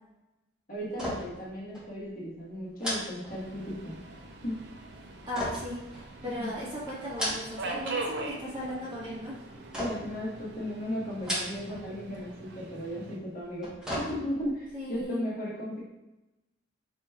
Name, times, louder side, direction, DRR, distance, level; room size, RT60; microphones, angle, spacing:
voice 1, 0.7-3.9 4.4-4.5 6.2-6.5 9.8-13.7 14.0-15.8, equal, 45° left, -5 dB, 1.2 m, -36 dB
sound 1, 0.9-1.5 1.7-1.9 2.8-3.9 5.3-6.5 7.0-7.8 8.1-8.6 9.7-10.2 11.1-11.9 12.2-12.3 13.4-14.6 15.0-15.1, equal, 5° right, 1.1 m, -36 dB
Subway metro underground, 3.3-13.2, right 2 dB, 60° right, 0.5 m, -42 dB
voice 2, 5.3-9.3 14.7-15.2, equal, 25° right, -7 dB, 1.4 m, -36 dB
4.9 x 4.4 x 2.3 m, 1.0 s
head